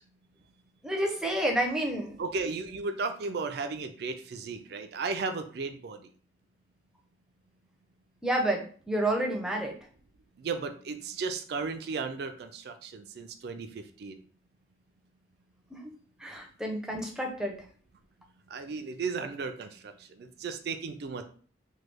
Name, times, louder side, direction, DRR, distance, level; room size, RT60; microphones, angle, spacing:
voice 1, 0.8-2.2 8.2-9.7 15.7-15.9 16.2-17.6, right 1 dB, 5° right, 1 dB, 0.5 m, -29 dB
voice 2, 2.2-6.0 10.4-14.1 18.5-21.2, right 4 dB, 60° right, 7 dB, 0.4 m, -35 dB
3.1 x 2.2 x 3.3 m, 0.43 s
head